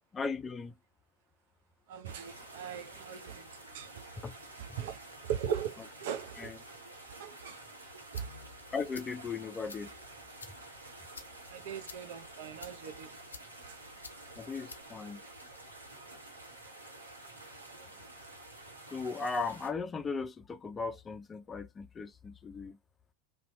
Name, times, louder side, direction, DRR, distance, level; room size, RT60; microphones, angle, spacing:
voice 1, 0.1-0.7 4.2-4.3 6.4-6.6 8.7-9.9 14.4-15.2 18.9-22.8, left 4 dB, 20° left, 0.4 m, -37 dB
voice 2, 1.9-3.9 4.6-5.0 5.2-6.5 7.2-7.6 8.1-8.3 11.5-13.1 13.7-13.8, right 9 dB, 60° right, 0.5 m, -39 dB
sound 1, 2.1-19.7, right 2 dB, 85° right, 0.9 m, -50 dB
sound 2, 7.8-15.9, left 4 dB, 80° left, 0.4 m, -54 dB
2.8 x 2.2 x 2.9 m
figure-of-eight pair, 80°, 0 cm